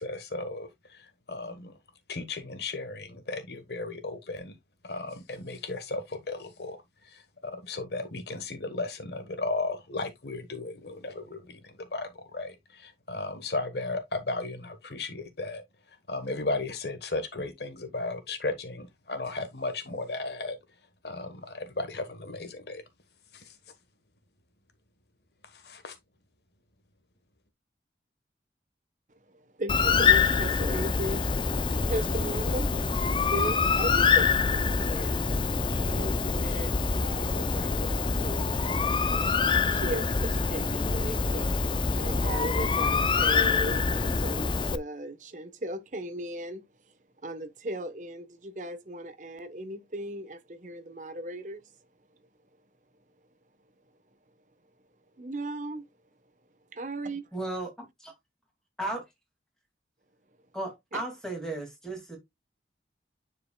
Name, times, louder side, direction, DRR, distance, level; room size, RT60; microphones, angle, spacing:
voice 1, 0.0-1.7 2.1-4.5 4.8-6.8 7.0-15.6 16.1-20.6 21.0-22.8 23.3-23.6 25.5-26.0, left 3 dB, 70° left, 1.2 m, -35 dB
voice 2, 29.3-31.3 31.8-32.7 33.2-35.3 35.9-38.6 39.7-41.5 41.9-46.6 47.2-51.6 55.2-55.8 56.7-57.2 60.9-61.0, right 1 dB, 45° right, 1.0 m, -37 dB
Bird, 29.7-44.8, left 5 dB, 30° left, 0.4 m, -25 dB
voice 3, 57.3-57.7 58.8-59.0 60.5-62.2, right 2 dB, 5° left, 2.2 m, -34 dB
10.0 x 4.9 x 2.3 m
head